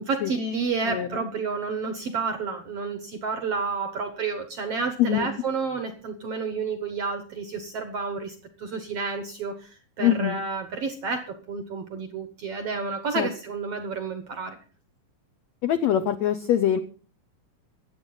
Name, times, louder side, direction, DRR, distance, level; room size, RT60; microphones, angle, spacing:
voice 1, 0.1-14.6, right 4 dB, 65° right, 7 dB, 1.6 m, -30 dB
voice 2, 0.8-1.2 5.0-5.3 10.0-10.4 13.1-13.3 15.6-16.8, left 10 dB, 80° left, 9 dB, 1.5 m, -23 dB
24.0 x 8.2 x 3.9 m, 0.39 s
omnidirectional pair, 4.1 m